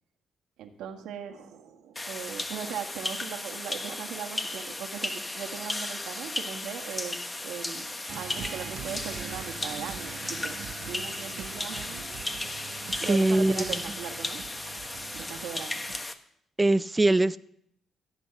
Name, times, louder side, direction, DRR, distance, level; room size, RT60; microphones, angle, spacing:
voice 1, 0.6-7.2 7.4-7.9 8.2-10.2 10.4-10.6 10.9-12.0 13.0-14.4 15.1-15.8, right 8 dB, 90° right, 5 dB, 1.6 m, -39 dB
sound 1, 2.0-16.1, left 2 dB, 20° left, 1.1 m, -35 dB
sound 2, 8.1-16.1, right 10 dB, 75° right, 0.6 m, -43 dB
voice 2, 13.1-13.7 16.6-17.4, right 2 dB, 15° right, 13 dB, 0.5 m, -22 dB
15.0 x 8.4 x 7.1 m, 0.70 s
cardioid pair, 90°, 0 cm